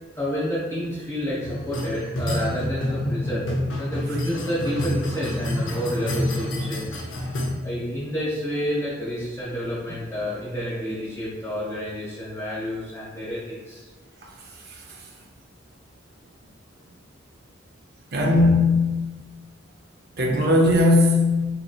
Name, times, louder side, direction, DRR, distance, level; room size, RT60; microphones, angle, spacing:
voice 1, 0.1-7.0 7.6-13.9, equal, 15° left, 1.1 m, -29 dB
sound 1, 1.4-7.5, left 1 dB, 70° left, 0.6 m, -28 dB
voice 2, 18.1-19.0 20.2-21.5, left 2 dB, 50° right, 0.6 m, -18 dB
4.1 x 2.8 x 2.3 m
head